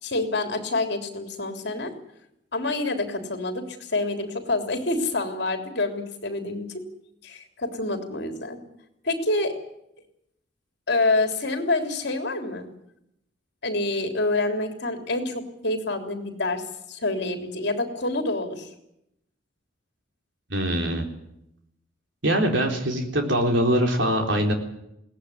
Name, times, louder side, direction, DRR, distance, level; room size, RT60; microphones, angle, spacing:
voice 1, 0.0-1.9 2.5-6.8 7.2-8.6 9.0-9.5 10.9-12.7 13.6-16.6 16.9-18.7, left 2 dB, 60° left, 5 dB, 3.4 m, -27 dB
voice 2, 20.5-21.1 22.2-24.5, right 1 dB, 65° right, 3 dB, 4.0 m, -23 dB
21.5 x 18.0 x 9.9 m, 0.82 s
head